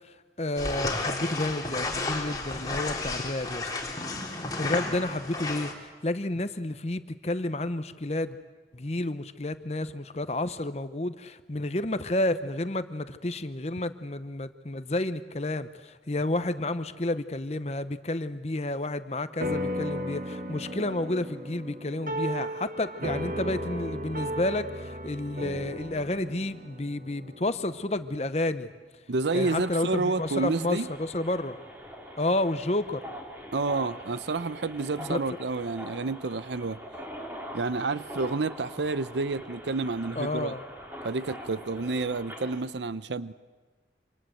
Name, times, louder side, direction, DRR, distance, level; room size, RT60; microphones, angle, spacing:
voice 1, 0.1-3.7 4.3-8.4 8.7-28.7 29.3-31.6 32.2-33.0 35.0-35.2 40.2-40.6, left 2 dB, 35° left, 11 dB, 0.9 m, -30 dB
sound 1, 0.6-5.7, left 2 dB, 20° left, 3.1 m, -32 dB
sound 2, 19.4-28.1, equal, 50° right, 2.0 m, -35 dB
voice 2, 29.1-30.9 33.5-36.8 37.5-40.5 41.0-43.3, right 3 dB, 85° right, 15 dB, 0.7 m, -29 dB
sound 3, 29.2-42.6, equal, 10° right, 3.4 m, -43 dB
27.0 x 26.0 x 7.8 m, 1.4 s
head